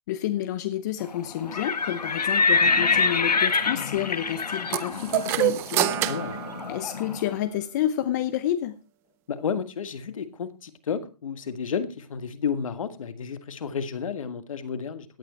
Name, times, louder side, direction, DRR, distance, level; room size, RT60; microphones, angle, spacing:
voice 1, 0.1-5.9 6.7-8.8, left 11 dB, 30° left, 12 dB, 0.9 m, -29 dB
Livestock farm animals working animals, 1.4-7.2, left 4 dB, 90° left, 2.0 m, -25 dB
sound 1, 4.7-7.4, right 14 dB, 10° right, 0.6 m, -27 dB
voice 2, 5.9-6.3 9.3-15.2, left 6 dB, 55° left, 11 dB, 2.1 m, -32 dB
17.0 x 9.4 x 4.5 m, 0.31 s
hypercardioid pair, 155°, 20 cm